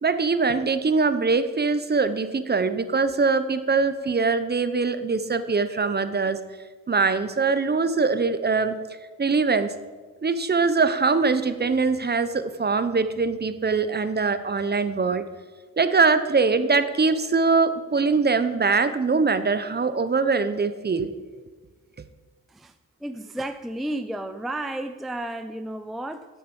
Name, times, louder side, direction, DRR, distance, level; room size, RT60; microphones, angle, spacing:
voice 1, 0.0-6.4 6.9-8.8 9.2-9.7 10.2-15.3 15.8-21.1, right 4 dB, 30° right, 12 dB, 0.8 m, -22 dB
voice 2, 23.0-26.3, right 1 dB, ahead, 9 dB, 0.5 m, -32 dB
12.0 x 7.8 x 5.4 m, 1.3 s
cardioid pair, 85°, 35 cm